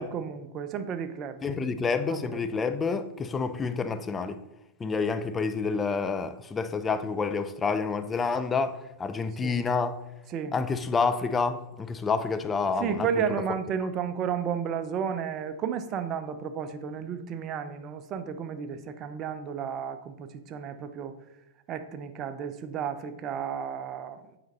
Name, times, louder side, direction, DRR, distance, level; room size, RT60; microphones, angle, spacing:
voice 1, 0.0-1.5 2.1-2.5 9.4-9.6 10.3-10.6 12.8-21.1 21.7-24.2, right 7 dB, 35° right, 0.6 m, -33 dB
voice 2, 1.4-4.4 4.8-10.0 10.5-13.2, left 4 dB, 20° left, 0.6 m, -28 dB
7.8 x 5.2 x 4.0 m
hypercardioid pair, 105°, 0 cm